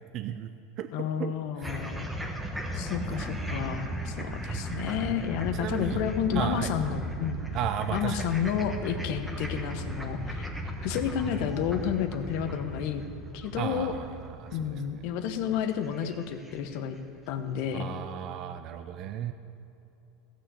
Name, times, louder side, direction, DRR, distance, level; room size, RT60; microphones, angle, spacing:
voice 1, 0.1-1.3 3.1-3.3 5.6-6.0 6.3-6.7 7.5-8.2 13.6-14.8 17.7-19.3, right 10 dB, 40° right, 9 dB, 0.5 m, -34 dB
voice 2, 0.9-2.1 2.7-7.4 7.9-10.5 10.8-13.0 13.3-14.0 14.5-17.0 17.3-17.9, left 8 dB, 60° left, 9 dB, 1.0 m, -31 dB
sound 1, 1.6-17.0, right 1 dB, 5° right, 1.1 m, -36 dB
15.5 x 6.3 x 8.2 m, 2.9 s
supercardioid pair, 150°, 0 cm